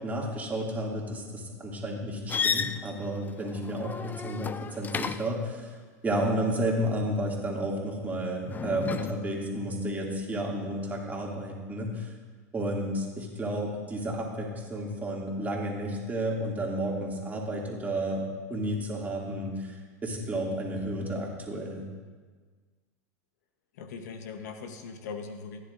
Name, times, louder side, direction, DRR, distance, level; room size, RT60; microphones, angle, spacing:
voice 1, 0.0-5.7 6.0-12.1 12.5-18.2 18.5-19.8 20.0-21.9, right 1 dB, 15° right, -2 dB, 2.4 m, -32 dB
sound 1, 2.3-5.5 8.5-9.1, left 6 dB, 20° left, 0.4 m, -33 dB
voice 2, 23.7-25.6, left 5 dB, 70° left, 7 dB, 1.0 m, -40 dB
15.5 x 10.0 x 2.5 m, 1.5 s
hypercardioid pair, 100°, 9 cm